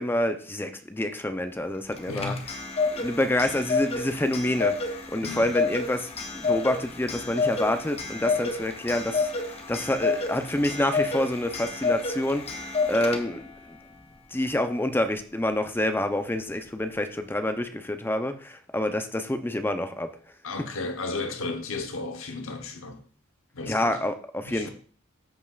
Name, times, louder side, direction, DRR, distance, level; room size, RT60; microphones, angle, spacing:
voice 1, 0.0-2.4 2.9-13.8 14.3-20.1 23.7-24.7, left 1 dB, 10° left, 0.6 m, -28 dB
Clock, 1.9-13.5, left 4 dB, 30° left, 1.0 m, -29 dB
voice 2, 2.1-2.4 5.2-5.5 20.4-23.0 23.5-24.0 24.4-24.7, left 3 dB, 85° left, 1.0 m, -34 dB
13.5 x 5.4 x 2.4 m
head